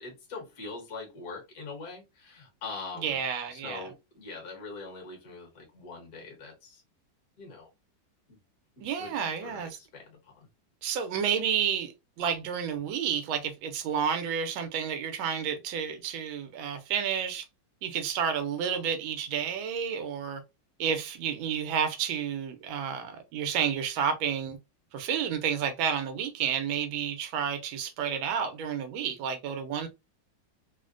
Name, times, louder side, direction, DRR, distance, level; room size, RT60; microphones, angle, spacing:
voice 1, 0.0-3.2 3.5-6.8 7.4-7.7 8.3-8.4 8.8-9.1 9.4-10.5, left 4 dB, 50° left, 1.6 m, -43 dB
voice 2, 3.0-3.8 8.8-9.8 10.8-17.5 17.8-20.4 20.8-24.6 24.9-29.9, right 7 dB, 85° right, 1.4 m, -30 dB
3.7 x 2.1 x 2.4 m
omnidirectional pair, 2.1 m